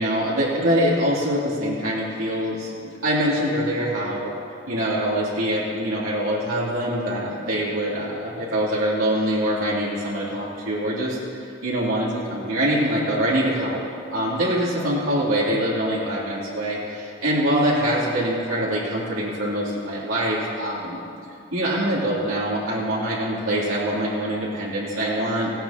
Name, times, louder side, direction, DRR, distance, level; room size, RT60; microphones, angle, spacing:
voice 1, 0.0-4.3 4.7-13.8 14.1-21.0 21.5-25.5, equal, 85° right, -7 dB, 3.2 m, -24 dB
17.5 x 16.5 x 3.0 m, 2.6 s
head